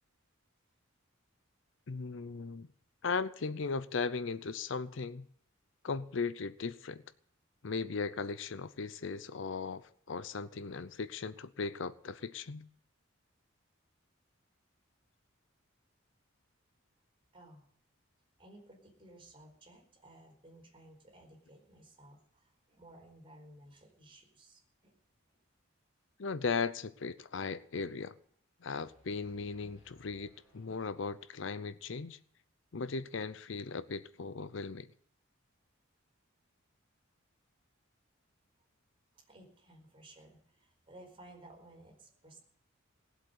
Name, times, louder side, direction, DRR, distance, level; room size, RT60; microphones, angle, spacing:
voice 1, 1.9-2.7 3.0-5.3 5.8-7.0 7.6-12.7 26.2-28.1 28.6-32.2 32.7-34.9, left 4 dB, 60° left, 0.6 m, -37 dB
voice 2, 17.3-17.6 18.4-25.0 39.1-42.4, right 1 dB, 25° right, 4.6 m, -57 dB
sound 1, 28.8-31.7, right 1 dB, 5° right, 7.9 m, -67 dB
19.0 x 8.1 x 8.1 m
head